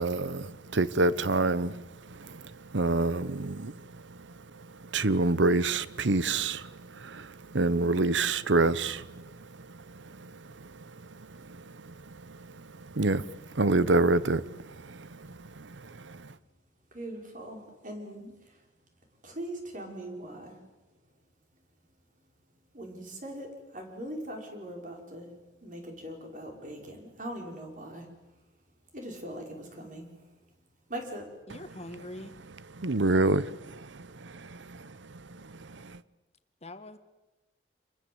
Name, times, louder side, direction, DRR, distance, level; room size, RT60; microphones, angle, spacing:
voice 1, 0.0-16.3 31.5-36.0, right 2 dB, 85° right, 1.0 m, -29 dB
voice 2, 16.9-18.3 19.2-20.6 22.7-25.4 25.6-28.1 28.9-30.2 30.9-31.3, right 1 dB, 45° right, 5.8 m, -41 dB
voice 3, 31.5-32.3 36.6-37.0, left 1 dB, 35° left, 1.6 m, -43 dB
27.5 x 22.5 x 8.1 m
head